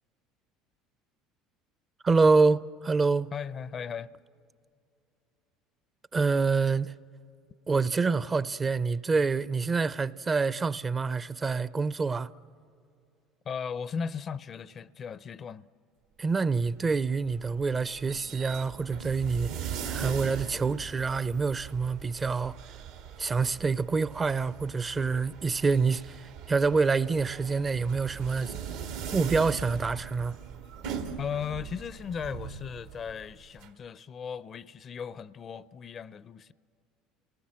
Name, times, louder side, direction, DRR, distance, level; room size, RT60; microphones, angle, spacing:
voice 1, 2.0-3.3 6.1-6.9 7.7-12.3 16.2-22.6 23.2-28.5 29.1-30.4, right 4 dB, 25° right, 0.5 m, -27 dB
voice 2, 3.3-4.1 13.4-15.7 31.2-36.5, left 7 dB, 40° left, 0.5 m, -37 dB
sound 1, 16.6-33.7, right 8 dB, 85° right, 1.7 m, -40 dB
29.5 x 19.0 x 7.6 m
supercardioid pair, 95°, 0 cm